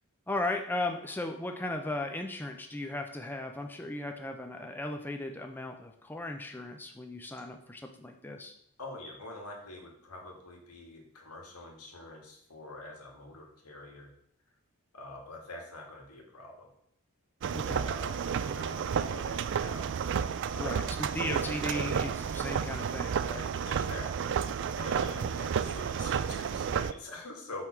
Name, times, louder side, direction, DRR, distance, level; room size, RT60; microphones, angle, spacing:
voice 1, 0.3-8.5 17.5-17.9 20.6-23.5 25.1-25.3, left 2 dB, 10° left, 4 dB, 0.5 m, -36 dB
voice 2, 8.8-14.1 14.9-16.7 17.5-19.9 20.5-20.9 23.6-27.6, left 2 dB, 80° left, 1 dB, 1.8 m, -45 dB
sound 1, 17.4-26.9, right 7 dB, 55° right, 0.3 m, -31 dB
5.5 x 4.7 x 5.9 m, 0.69 s
head